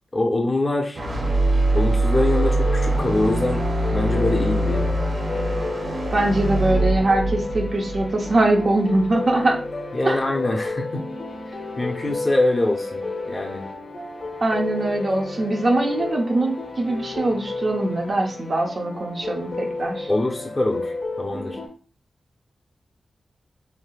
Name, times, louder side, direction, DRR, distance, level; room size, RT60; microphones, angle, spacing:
voice 1, 0.1-1.0 1.7-4.9 9.9-11.0 11.8-13.6 20.1-21.6, left 2 dB, 30° left, 0 dB, 0.6 m, -24 dB
sound 1, 0.9-9.1, right 1 dB, 75° right, 1.1 m, -23 dB
sound 2, 2.2-21.7, left 2 dB, 65° left, 1.0 m, -32 dB
voice 2, 6.1-9.6 10.0-10.3 14.4-20.1, right 2 dB, 55° right, 1 dB, 0.7 m, -22 dB
3.3 x 2.6 x 2.3 m, 0.38 s
cardioid pair, 60°, 0 cm